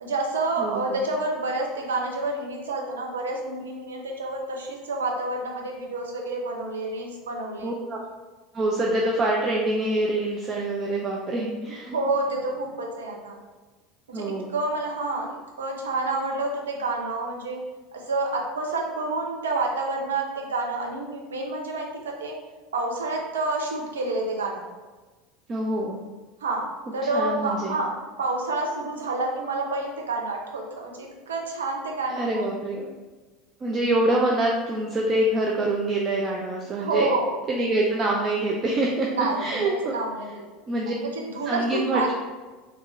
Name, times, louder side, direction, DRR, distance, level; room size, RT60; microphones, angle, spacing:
voice 1, 0.0-7.7 11.9-13.4 14.1-15.3 15.6-17.6 17.9-22.3 22.7-24.6 26.4-26.6 26.9-27.9 28.2-32.4 36.8-37.4 39.1-40.4 41.1-41.6 41.9-42.1, right 2 dB, 75° right, 0 dB, 0.6 m, -28 dB
voice 2, 0.6-1.0 7.6-8.0 8.5-12.0 14.1-14.5 25.5-26.0 27.1-27.8 32.2-32.9 33.6-37.1 37.5-39.1 39.4-40.0 40.7-40.9 41.4-42.1, right 1 dB, 30° right, -2 dB, 0.4 m, -25 dB
3.6 x 2.4 x 3.1 m, 1.3 s
figure-of-eight pair, 75°, 0 cm